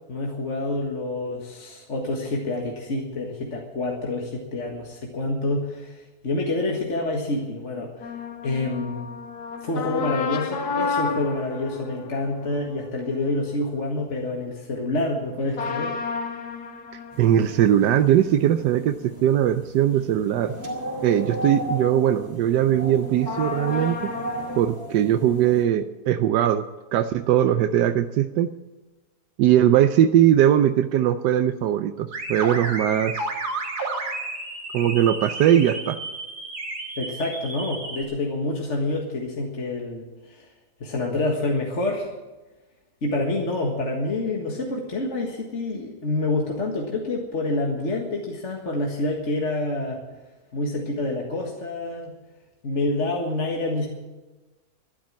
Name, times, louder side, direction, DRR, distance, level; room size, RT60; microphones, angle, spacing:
voice 1, 0.1-8.1 8.4-9.1 9.6-16.0 37.0-40.5 40.8-42.1 43.0-50.0 50.5-52.1 52.6-53.9, left 2 dB, 45° left, 0 dB, 2.0 m, -27 dB
sound 1, 8.0-13.9 15.5-20.9 21.2-21.3 23.3-24.6, left 5 dB, 70° left, 1.7 m, -32 dB
sound 2, 17.1-25.7, equal, 10° right, 3.4 m, -35 dB
voice 2, 17.2-20.5 21.0-24.1 24.6-26.6 26.9-28.5 29.4-33.3 34.7-36.0, right 11 dB, 85° right, 9 dB, 1.3 m, -20 dB
sound 3, 32.1-38.0, right 2 dB, 70° right, 3.1 m, -32 dB
13.0 x 12.0 x 7.5 m, 1.2 s
omnidirectional pair, 1.8 m